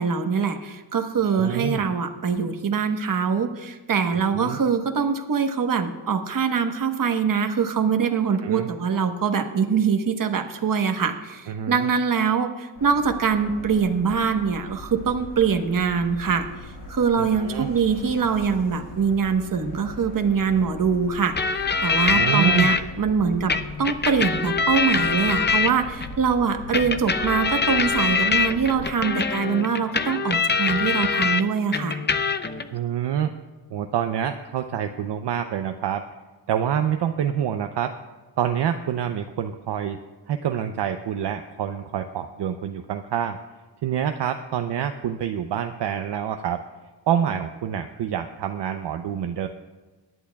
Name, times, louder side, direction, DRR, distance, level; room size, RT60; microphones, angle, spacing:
voice 1, 0.0-16.5 16.9-23.5 23.8-32.0, right 6 dB, 45° right, 6 dB, 1.2 m, -23 dB
voice 2, 1.2-1.8 4.3-4.6 8.4-8.7 11.5-11.9 17.2-17.7 22.1-22.7 32.7-33.3 33.7-36.0 36.5-37.9 38.4-40.0 40.3-43.4 43.8-46.6 47.1-49.5, right 9 dB, 65° right, 6 dB, 0.7 m, -27 dB
sound 1, 12.8-29.0, left 2 dB, 70° left, 3.1 m, -40 dB
sound 2, 21.4-22.8 23.5-26.1 26.7-31.4 31.7-32.6, left 5 dB, 25° left, 0.5 m, -23 dB
23.0 x 11.0 x 2.3 m, 1.3 s
wide cardioid pair, 125°, 44 cm